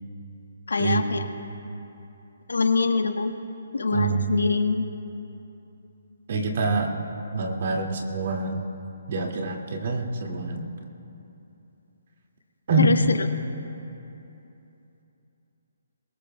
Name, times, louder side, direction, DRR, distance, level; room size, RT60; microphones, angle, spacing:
voice 1, 0.7-1.3 2.5-3.3 3.7-4.9 12.8-13.2, left 4 dB, 85° left, 7 dB, 1.1 m, -23 dB
voice 2, 3.9-4.3 6.3-6.9 7.3-8.6 9.1-10.6 12.7-13.0, right 3 dB, 55° right, 1 dB, 2.1 m, -25 dB
22.5 x 21.0 x 2.3 m, 2.9 s
hypercardioid pair, 150°, 0 cm